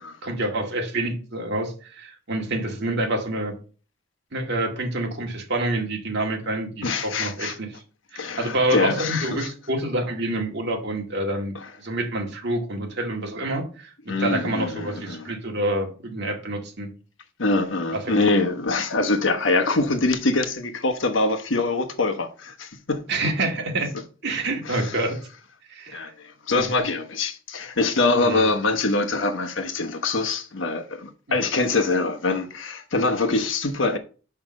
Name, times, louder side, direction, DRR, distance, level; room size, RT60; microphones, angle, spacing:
voice 1, 0.2-3.5 4.3-7.7 8.1-16.9 17.9-18.3 23.1-23.9 24.2-25.2 25.7-26.1 26.6-26.7 28.2-28.5, right 1 dB, 60° right, 2.0 m, -27 dB
voice 2, 6.8-7.5 8.2-9.5 11.5-11.7 14.1-15.3 17.4-23.0 24.7-25.0 25.9-34.0, left 3 dB, 75° left, 1.1 m, -24 dB
5.7 x 5.6 x 6.3 m
head